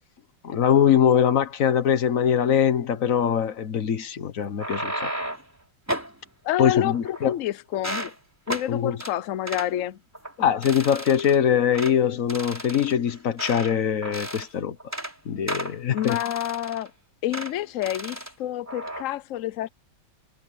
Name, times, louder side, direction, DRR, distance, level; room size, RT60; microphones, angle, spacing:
voice 1, 0.4-5.1 6.6-7.3 8.7-9.0 10.4-14.8 15.2-16.2, left 8 dB, 50° left, 1.3 m, -22 dB
sound 1, 4.4-5.5 5.9-6.2 6.8-7.4 7.7-8.1 8.5-8.7 9.0-9.1 9.5-9.7 10.1-10.3 10.6-11.4 11.7-12.0 12.3-13.8 14.0-14.5 14.8-15.1 15.5-16.9 17.3-17.5 17.8-18.3 18.7-19.0, right 1 dB, 5° right, 4.2 m, -33 dB
voice 2, 6.4-8.1 8.5-10.0 15.9-16.9 17.2-19.7, left 13 dB, 90° left, 0.7 m, -28 dB
omnidirectional pair, 2.2 m